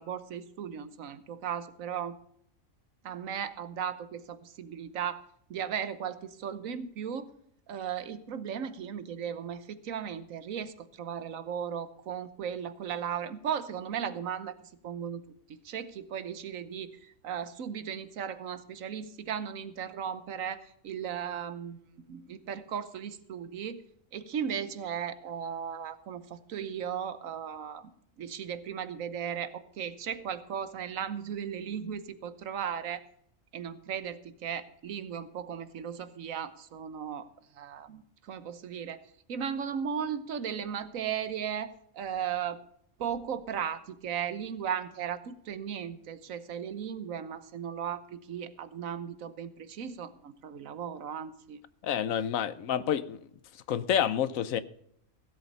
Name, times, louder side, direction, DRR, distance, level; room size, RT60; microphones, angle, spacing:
voice 1, 0.0-2.1 3.0-7.3 7.7-14.6 14.8-15.2 15.6-23.8 24.1-27.9 28.2-33.0 33.5-37.3 37.5-42.6 43.0-51.6, right 8 dB, 85° right, 1.3 m, -36 dB
voice 2, 51.8-53.2 53.7-54.6, left 9 dB, 85° left, 1.2 m, -28 dB
16.0 x 8.0 x 5.4 m
omnidirectional pair, 1.4 m